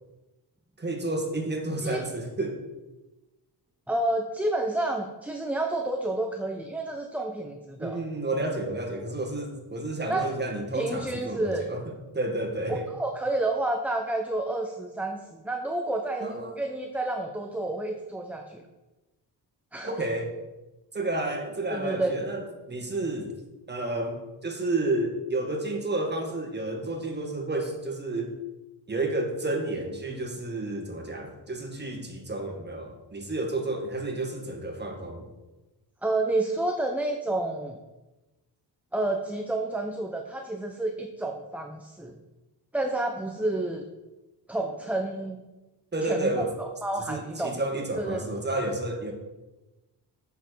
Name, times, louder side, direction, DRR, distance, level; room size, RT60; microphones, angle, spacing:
voice 1, 0.8-2.6 7.8-11.8 12.1-12.9 16.2-16.5 19.8-20.3 20.9-23.3 23.7-28.3 28.9-35.3 45.9-46.5 47.1-49.1, right 2 dB, 25° right, 2 dB, 1.9 m, -31 dB
voice 2, 3.9-8.0 10.1-10.3 10.7-11.7 12.9-18.6 19.7-19.9 21.7-22.2 36.0-37.8 38.9-42.2 42.7-43.8 44.5-45.4 46.0-47.6 47.9-48.2, right 2 dB, 5° right, 3 dB, 0.7 m, -30 dB
7.6 x 6.8 x 4.7 m, 1.1 s
cardioid pair, 90°, 42 cm